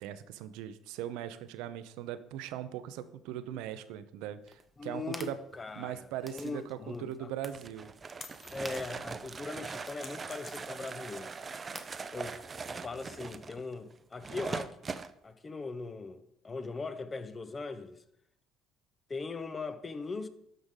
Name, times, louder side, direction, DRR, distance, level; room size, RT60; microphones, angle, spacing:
voice 1, 0.0-5.4 5.7-7.9, right 11 dB, 80° right, 0.6 m, -40 dB
sound 1, 4.4-13.4, equal, ahead, 0.9 m, -53 dB
voice 2, 4.8-6.1 6.3-7.3 8.5-11.3 12.1-12.3 12.7-15.0 15.2-18.0 19.1-20.3, left 3 dB, 30° left, 0.9 m, -40 dB
sound 2, 7.5-15.1, right 5 dB, 30° right, 0.5 m, -41 dB
sound 3, 8.0-9.2 9.6-11.0, left 5 dB, 45° left, 1.2 m, -50 dB
12.0 x 5.1 x 3.8 m
supercardioid pair, 80°, 0 cm